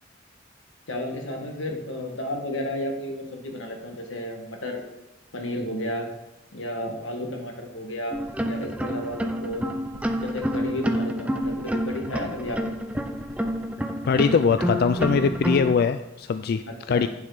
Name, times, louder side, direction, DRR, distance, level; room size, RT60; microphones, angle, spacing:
voice 1, 0.9-4.8 5.3-6.1 6.5-9.7 10.2-12.7 16.7-17.1, left 1 dB, 90° left, 2 dB, 1.6 m, -32 dB
sound 1, 8.1-15.8, equal, 5° right, 0.5 m, -28 dB
voice 2, 14.1-16.6 16.9-17.1, left 5 dB, 55° left, 10 dB, 0.3 m, -22 dB
8.6 x 7.3 x 4.9 m, 0.94 s
head